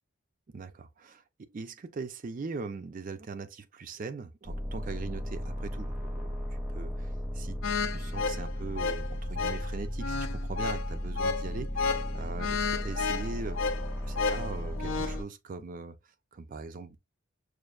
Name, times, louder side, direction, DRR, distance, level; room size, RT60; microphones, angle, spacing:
voice 1, 0.5-7.6 7.9-16.0 16.3-17.0, right 4 dB, 40° right, 0.3 m, -41 dB
sound 1, 4.4-15.2, equal, 5° right, 0.7 m, -35 dB
sound 2, 7.6-15.2, left 5 dB, 75° left, 0.5 m, -33 dB
6.2 x 2.5 x 2.3 m
head